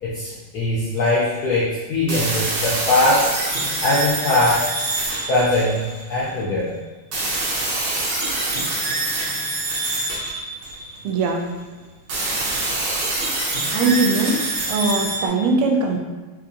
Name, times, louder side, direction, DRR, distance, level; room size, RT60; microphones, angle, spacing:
voice 1, 0.0-3.3 3.8-4.7 5.3-6.8, left 2 dB, 85° left, -7 dB, 0.8 m, -21 dB
sound 1, 1.0-1.4 2.1-6.3 7.1-11.2 12.1-15.3, right 2 dB, 60° right, 1.1 m, -25 dB
voice 2, 11.0-11.5 13.7-14.4 14.7-16.0, right 3 dB, 85° right, 2 dB, 1.5 m, -20 dB
3.9 x 2.6 x 2.7 m, 1.3 s
omnidirectional pair, 2.3 m